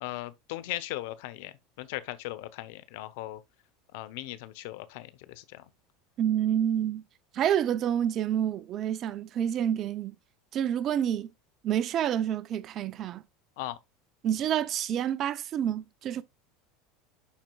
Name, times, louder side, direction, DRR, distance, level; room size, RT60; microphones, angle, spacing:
voice 1, 0.0-3.4 3.9-5.6 13.6-13.8, left 16 dB, 70° left, 0.7 m, -38 dB
voice 2, 6.2-7.0 7.3-10.1 10.5-11.3 11.6-13.2 14.2-16.2, right 10 dB, 45° right, 0.6 m, -28 dB
11.5 x 4.4 x 2.2 m
hypercardioid pair, 85°, 0 cm